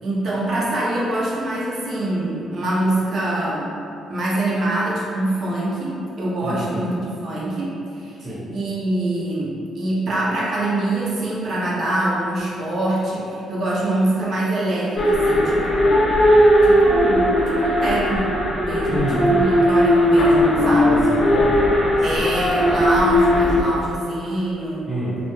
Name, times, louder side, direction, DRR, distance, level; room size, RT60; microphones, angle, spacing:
voice 1, 0.0-3.7 4.1-8.3 8.5-16.1 16.6-21.0 22.0-24.9, right 1 dB, 55° right, -6 dB, 0.7 m, -24 dB
voice 2, 6.4-6.9 8.2-8.4 18.9-19.2 20.6-22.2 24.9-25.2, right 1 dB, 30° right, -11 dB, 1.0 m, -27 dB
sound 1, 15.0-23.6, equal, 50° left, 0.4 m, -17 dB
2.4 x 2.2 x 3.1 m, 2.6 s
cardioid pair, 90°, 0 cm